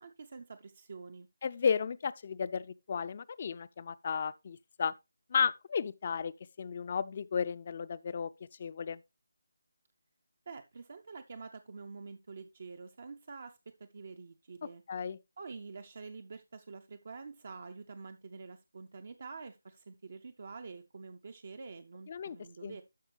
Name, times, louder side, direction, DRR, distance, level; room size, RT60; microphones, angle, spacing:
voice 1, 0.0-1.3 10.5-14.8 15.4-22.8, right 4 dB, 50° right, 0.6 m, -47 dB
voice 2, 1.4-4.9 5.3-8.3 8.6-9.0 14.9-15.2 22.1-22.4 22.6-22.8, left 6 dB, 40° left, 0.4 m, -33 dB
12.0 x 4.9 x 3.3 m
figure-of-eight pair, 155°, 0 cm